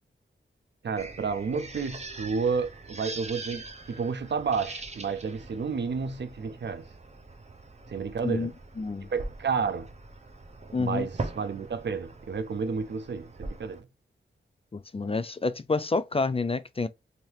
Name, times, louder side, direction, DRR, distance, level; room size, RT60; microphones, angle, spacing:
voice 1, 0.8-6.9 7.9-8.5 9.1-9.9 10.8-13.9, right 5 dB, 60° right, 0.5 m, -31 dB
sound 1, 1.0-13.8, right 3 dB, 35° right, 0.7 m, -42 dB
voice 2, 8.8-9.1 10.7-11.1 14.7-16.9, left 3 dB, 30° left, 0.4 m, -28 dB
2.8 x 2.7 x 3.3 m
cardioid pair, 50°, 21 cm